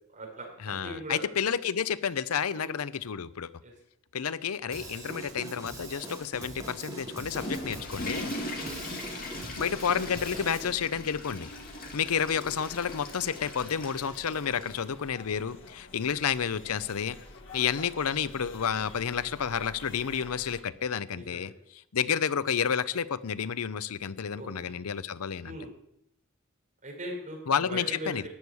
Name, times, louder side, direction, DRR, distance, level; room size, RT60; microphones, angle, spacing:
voice 1, 0.1-1.2 2.5-2.7 3.6-3.7 8.5-8.8 11.8-12.1 14.3-14.7 15.9-16.2 21.1-21.5 24.3-24.8 25.4-25.7 26.8-28.3, right 1 dB, 35° right, 0 dB, 4.8 m, -41 dB
voice 2, 0.6-3.5 4.1-8.3 9.6-11.5 11.9-17.2 17.5-21.5 21.9-25.6 27.5-28.2, left 7 dB, 90° left, 16 dB, 0.6 m, -30 dB
Drum kit / Drum, 4.7-10.7, right 1 dB, 15° right, 3.6 m, -42 dB
Water / Toilet flush, 7.0-14.8, left 1 dB, 45° left, 2.5 m, -40 dB
sound 1, 7.4-20.6, left 2 dB, 60° left, 1.9 m, -49 dB
14.0 x 6.3 x 9.8 m, 0.78 s
head